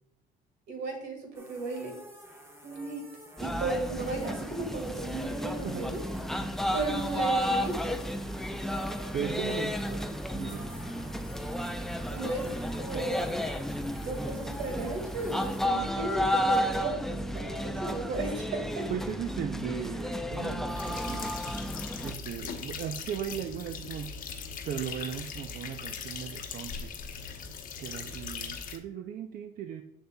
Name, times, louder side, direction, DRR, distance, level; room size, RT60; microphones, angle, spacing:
voice 1, 0.7-1.9 2.6-3.0 3.4-6.0 6.7-8.0 9.2-9.6 12.1-13.5 14.0-18.9, right 3 dB, 85° right, 3 dB, 1.8 m, -35 dB
sound 1, 1.3-15.7, equal, 15° right, 1.1 m, -49 dB
sound 2, 3.4-22.1, equal, ahead, 0.4 m, -32 dB
voice 2, 5.6-6.0 9.1-10.7 18.9-21.6 22.0-26.9 27.8-29.8, right 9 dB, 60° right, 7 dB, 0.5 m, -37 dB
sound 3, 20.7-28.8, left 6 dB, 55° left, 0.8 m, -40 dB
7.3 x 6.6 x 2.2 m, 0.76 s
cardioid pair, 110°, 17 cm